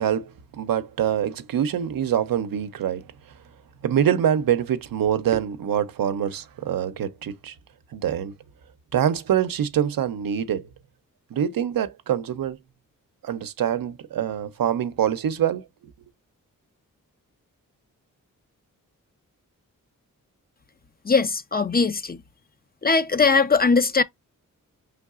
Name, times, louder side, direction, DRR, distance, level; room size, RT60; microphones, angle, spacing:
voice 1, 0.0-3.0 3.8-7.5 7.9-8.3 8.9-10.7 11.3-12.6 13.2-15.6, right 9 dB, 80° right, 0.6 m, -25 dB
voice 2, 21.0-22.2 22.8-24.0, left 4 dB, 30° left, 0.5 m, -20 dB
4.6 x 3.4 x 2.3 m
cardioid pair, 60°, 34 cm